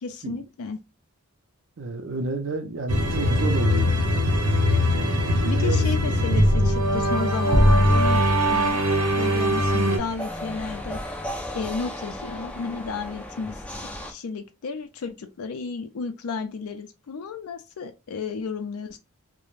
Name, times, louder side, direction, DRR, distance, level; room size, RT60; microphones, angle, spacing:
voice 1, 0.0-0.8 5.4-11.0 11.5-13.6 14.0-19.0, left 5 dB, 80° left, 0.4 m, -33 dB
voice 2, 1.8-4.0 5.5-5.8, right 3 dB, 60° right, 0.5 m, -30 dB
sound 1, 2.9-10.0, equal, 90° right, 0.7 m, -21 dB
sound 2, 6.8-14.1, equal, 5° left, 0.3 m, -37 dB
2.5 x 2.1 x 3.0 m
head